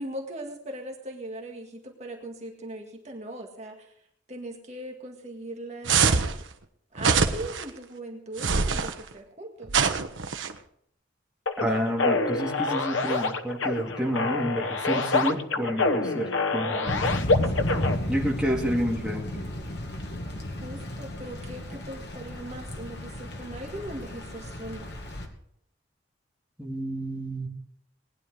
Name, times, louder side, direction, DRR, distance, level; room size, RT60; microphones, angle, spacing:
voice 1, 0.0-3.9 4.3-6.4 6.9-9.9 17.7-18.0 20.6-24.8, right 1 dB, 35° right, 1 dB, 1.9 m, -39 dB
sound 1, 5.9-6.4 7.0-7.6 8.4-8.9 9.7-10.5, right 5 dB, 85° right, 1.1 m, -23 dB
sound 2, 11.5-18.0, left 3 dB, 90° left, 1.1 m, -27 dB
voice 2, 11.6-17.1 18.1-19.4 26.6-27.5, equal, 5° right, -2 dB, 2.2 m, -29 dB
Thunder / Rain, 16.9-25.3, left 1 dB, 60° left, 2.3 m, -33 dB
19.5 x 10.5 x 4.9 m, 0.70 s
head